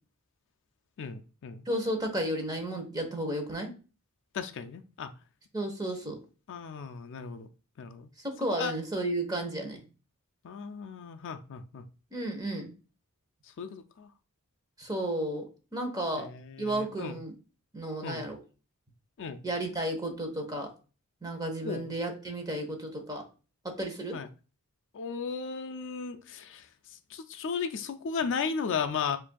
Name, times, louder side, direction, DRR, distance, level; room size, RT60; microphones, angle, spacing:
voice 1, 1.0-1.6 4.3-5.1 6.5-7.5 7.8-8.1 8.6-8.8 10.4-11.9 13.6-14.1 16.2-17.2 18.0-18.2 19.2-19.4 21.6-21.8 24.1-24.3 24.9-29.2, left 6 dB, 55° left, 0.4 m, -35 dB
voice 2, 1.7-3.7 5.5-6.2 8.2-9.8 12.1-12.7 14.8-15.5 15.7-16.3 16.6-17.3 17.7-18.4 19.4-20.7 21.2-23.2 23.6-24.2, right 1 dB, 15° right, 0.8 m, -33 dB
7.2 x 2.5 x 2.2 m
head